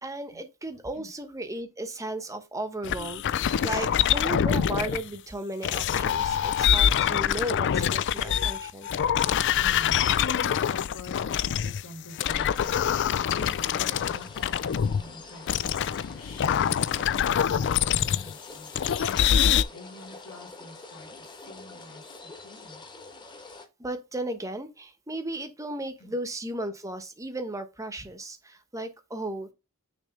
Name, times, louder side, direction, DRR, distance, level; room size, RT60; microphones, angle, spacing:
voice 1, 0.0-8.9 23.8-29.5, right 1 dB, 15° right, 1.0 m, -35 dB
sound 1, 2.8-5.0 5.6-11.8 12.2-15.0 15.5-18.3 18.8-19.6, left 9 dB, 55° left, 0.4 m, -25 dB
voice 2, 9.2-16.5 16.9-22.8 26.0-26.1, left 2 dB, 70° left, 2.3 m, -46 dB
sound 2, 12.2-23.7, left 3 dB, 20° left, 1.4 m, -46 dB
6.4 x 3.3 x 5.2 m
head